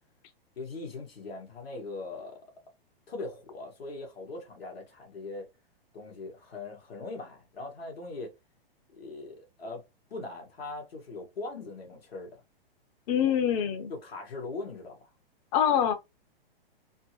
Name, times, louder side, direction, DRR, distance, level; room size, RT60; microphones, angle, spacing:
voice 1, 0.6-2.4 3.1-5.5 5.9-8.3 8.9-9.8 10.1-12.4 13.9-15.1, left 3 dB, 80° left, 1.8 m, -40 dB
voice 2, 13.1-13.9 15.5-15.9, left 9 dB, 40° left, 0.8 m, -25 dB
4.3 x 2.0 x 2.8 m
hypercardioid pair, 120°, 30 cm